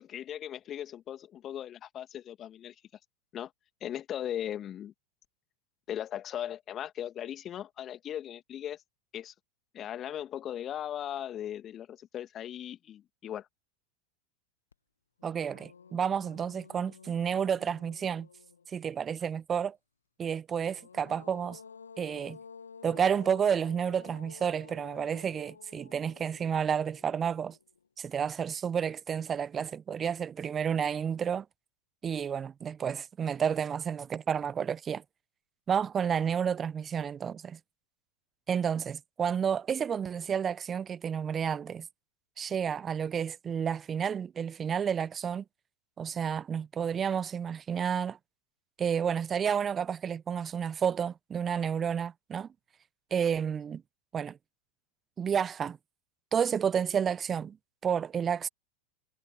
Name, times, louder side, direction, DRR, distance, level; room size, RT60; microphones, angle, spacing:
voice 1, 0.0-2.8 3.3-3.5 3.8-4.9 5.9-8.8 9.1-9.3 9.7-13.5, left 10 dB, 30° left, 2.5 m, -38 dB
sound 1, 14.7-14.8 15.2-18.9 20.5-27.8, left 6 dB, 80° left, 1.8 m, -52 dB
voice 2, 15.2-18.3 18.7-19.8 20.2-21.6 22.0-22.4 22.8-27.6 28.0-31.5 32.0-35.0 35.7-37.6 38.5-41.9 42.4-45.4 46.0-48.2 48.8-52.5 53.1-53.8 54.1-54.4 55.2-55.8 56.3-57.6 57.8-58.5, right 7 dB, 25° right, 1.1 m, -30 dB
figure-of-eight pair, 85°, 0 cm